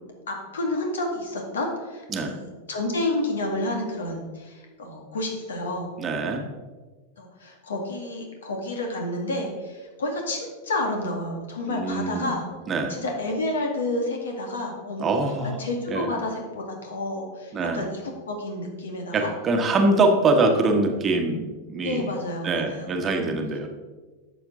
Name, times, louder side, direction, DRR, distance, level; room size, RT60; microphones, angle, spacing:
voice 1, 0.3-5.9 7.2-12.5 12.9-15.1 15.6-19.3 19.8-19.9 21.8-23.1, left 2 dB, 65° left, 2 dB, 2.0 m, -30 dB
voice 2, 6.0-6.4 11.7-12.3 12.7-12.9 15.0-15.6 15.9-16.1 17.5-17.9 19.1-22.1 22.4-23.7, right 2 dB, 25° right, 4 dB, 1.3 m, -23 dB
12.0 x 7.0 x 3.8 m, 1.3 s
figure-of-eight pair, 90°, 0 cm